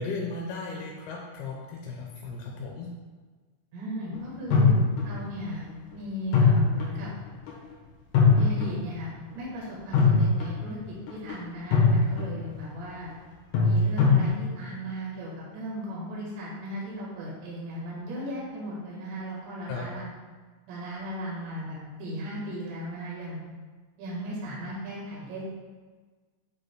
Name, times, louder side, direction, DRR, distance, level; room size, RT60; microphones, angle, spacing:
voice 1, 0.0-2.9 19.7-19.9, left 3 dB, 90° left, -1 dB, 2.2 m, -36 dB
voice 2, 3.7-4.7 5.0-5.7 5.9-7.1 8.3-10.8 11.1-13.1 13.6-20.1 20.7-23.4 24.0-25.4, equal, 75° right, -6 dB, 3.7 m, -36 dB
sound 1, 4.5-5.3 6.3-7.1 7.5-7.6 8.1-8.8 9.9-10.7 11.1-11.3 11.7-12.4 13.5-14.3, left 4 dB, 70° left, 2.0 m, -21 dB
8.9 x 4.9 x 2.2 m, 1.4 s
omnidirectional pair, 5.3 m